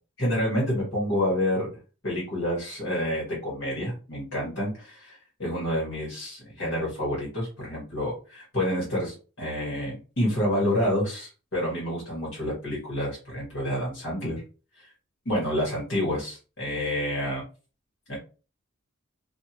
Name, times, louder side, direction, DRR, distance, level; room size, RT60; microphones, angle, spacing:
voice 1, 0.2-1.7 2.0-14.4 14.8-14.9 15.3-17.4 18.1-18.2, left 1 dB, 60° left, -5 dB, 1.8 m, -28 dB
3.4 x 2.5 x 2.9 m, 0.35 s
head